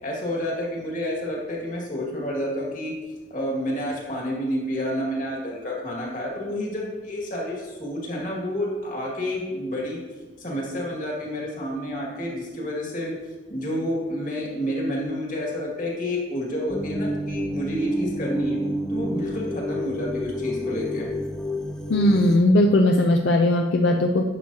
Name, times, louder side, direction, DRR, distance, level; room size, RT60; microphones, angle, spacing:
voice 1, 0.0-2.9 3.3-10.0 10.4-13.1 13.5-18.6 18.9-21.1, equal, 45° left, -2 dB, 1.9 m, -29 dB
sound 1, 16.7-22.4, equal, 5° left, 0.4 m, -29 dB
voice 2, 21.9-24.2, left 1 dB, 70° left, 3 dB, 0.5 m, -18 dB
10.5 x 6.3 x 2.8 m, 1.3 s
head